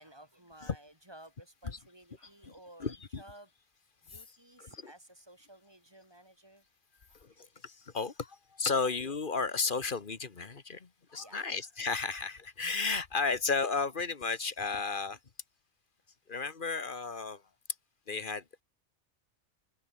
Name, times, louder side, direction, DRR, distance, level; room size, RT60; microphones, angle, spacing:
voice 1, 0.0-3.5 4.0-6.6 7.1-7.5 8.8-8.9 11.1-11.6, right 1 dB, 20° right, 2.6 m, -55 dB
voice 2, 2.8-3.2 4.1-4.2 4.6-4.7 7.2-15.2 16.3-17.4 18.1-18.6, left 4 dB, 45° left, 1.5 m, -33 dB
open air
omnidirectional pair, 1.2 m